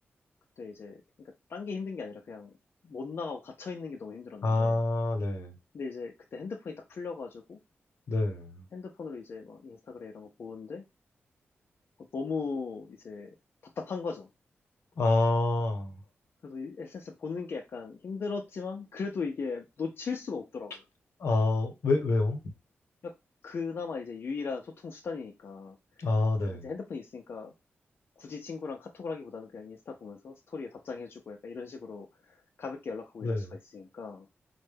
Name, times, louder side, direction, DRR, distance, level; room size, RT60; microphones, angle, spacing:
voice 1, 0.6-1.0 1.5-2.5 2.8-4.8 5.7-7.6 8.7-10.8 12.1-13.3 13.8-14.3 16.4-20.8 23.0-23.1 23.4-25.8 26.5-27.5 28.2-34.3, left 4 dB, 55° left, 0.5 m, -38 dB
voice 2, 4.4-5.5 8.1-8.6 15.0-15.9 21.2-22.4 26.0-26.6 33.2-33.5, left 2 dB, 75° left, 1.0 m, -27 dB
4.2 x 2.2 x 3.3 m
wide cardioid pair, 120°, 5 cm